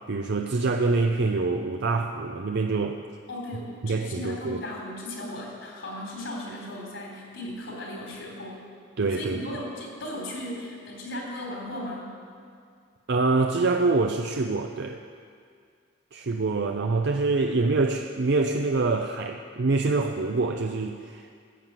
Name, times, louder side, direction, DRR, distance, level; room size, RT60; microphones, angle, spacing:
voice 1, 0.1-3.0 3.8-4.6 9.0-9.4 13.1-15.0 16.1-21.4, right 3 dB, 60° right, 4 dB, 0.6 m, -25 dB
voice 2, 3.3-8.7 9.1-12.1, left 1 dB, 75° left, -1 dB, 3.6 m, -36 dB
15.0 x 7.5 x 7.5 m, 2.2 s
head